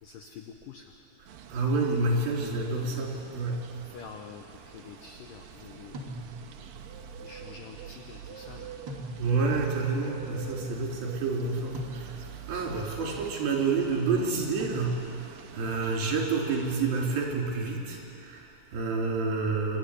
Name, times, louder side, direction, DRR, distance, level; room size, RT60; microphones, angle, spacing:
voice 1, 0.0-0.9 2.8-2.9 3.8-6.2 7.2-8.7, left 7 dB, 85° left, 4 dB, 1.9 m, -47 dB
voice 2, 1.2-3.6 9.2-19.8, right 3 dB, 55° right, -2 dB, 5.1 m, -29 dB
sound 1, 1.3-16.8, right 8 dB, 70° right, 2.3 m, -46 dB
sound 2, 5.9-6.7 8.9-9.6 11.7-12.5 14.6-15.4, right 1 dB, 30° right, 2.7 m, -41 dB
29.0 x 14.0 x 9.9 m, 2.7 s
omnidirectional pair, 5.3 m